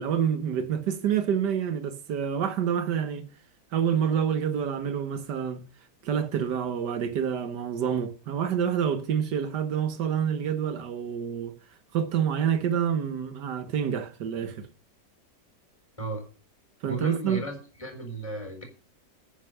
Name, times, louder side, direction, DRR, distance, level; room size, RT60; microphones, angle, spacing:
voice 1, 0.0-3.3 3.7-5.7 6.0-11.5 11.9-14.7 16.8-17.4, right 8 dB, 80° right, 1.7 m, -27 dB
voice 2, 16.8-18.6, right 1 dB, 20° left, 4.2 m, -35 dB
9.9 x 9.3 x 6.4 m
omnidirectional pair, 1.8 m